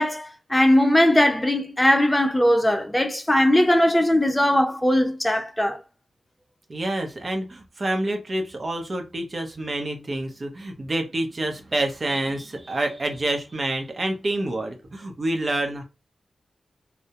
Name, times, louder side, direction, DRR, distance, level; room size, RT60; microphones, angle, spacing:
voice 1, 0.0-5.8, left 1 dB, 15° left, 0.4 m, -19 dB
voice 2, 6.7-15.8, right 1 dB, 50° right, 0.6 m, -27 dB
2.2 x 2.0 x 2.8 m
cardioid pair, 45°, 0 cm